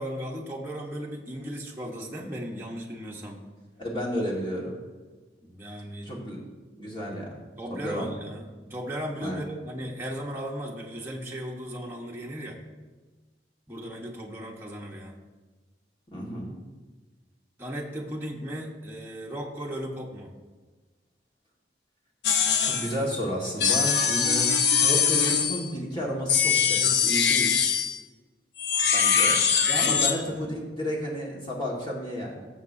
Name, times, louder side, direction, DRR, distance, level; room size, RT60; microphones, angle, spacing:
voice 1, 0.0-3.4 5.4-6.1 7.6-12.6 13.7-15.2 17.6-20.3 28.8-28.9 29.6-30.2, equal, 10° right, -3 dB, 1.2 m, -36 dB
voice 2, 3.8-4.8 6.0-6.4 6.8-7.4 7.7-8.1 9.2-9.4 16.1-16.5 22.6-27.5 28.9-32.5, equal, 25° left, -4 dB, 1.7 m, -32 dB
sound 1, 22.2-23.0 23.6-25.7 26.3-28.0 28.6-30.2, left 7 dB, 65° left, 0.8 m, -22 dB
18.0 x 7.4 x 2.7 m, 1.3 s
head